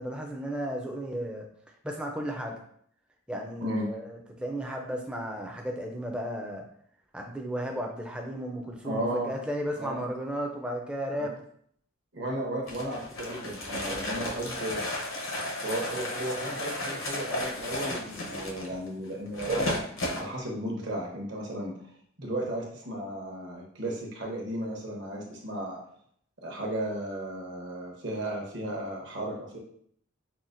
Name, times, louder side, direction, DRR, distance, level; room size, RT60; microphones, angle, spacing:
voice 1, 0.0-1.5 1.8-2.6 3.3-6.7 7.1-11.4, equal, 5° right, 0 dB, 0.4 m, -34 dB
voice 2, 8.8-9.3 9.8-10.1 11.2-11.3 12.1-14.8 15.6-19.8 20.1-21.7 22.2-25.8 26.4-29.6, right 1 dB, 60° right, -2 dB, 1.0 m, -34 dB
sound 1, 12.7-20.2, left 1 dB, 75° left, 0.8 m, -33 dB
5.6 x 2.1 x 2.5 m, 0.66 s
head